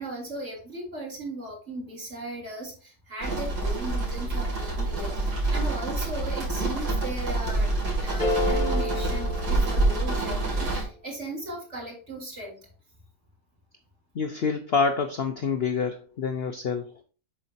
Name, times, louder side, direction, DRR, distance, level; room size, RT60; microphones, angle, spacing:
voice 1, 0.0-12.6, right 1 dB, 40° right, -1 dB, 3.1 m, -37 dB
sound 1, 3.2-10.8, right 2 dB, 65° right, 3.1 m, -27 dB
sound 2, 8.2-10.5, left 2 dB, 25° left, 1.1 m, -30 dB
voice 2, 14.1-16.9, left 5 dB, 70° left, 7 dB, 0.5 m, -27 dB
7.5 x 5.8 x 2.7 m, 0.37 s
omnidirectional pair, 1.9 m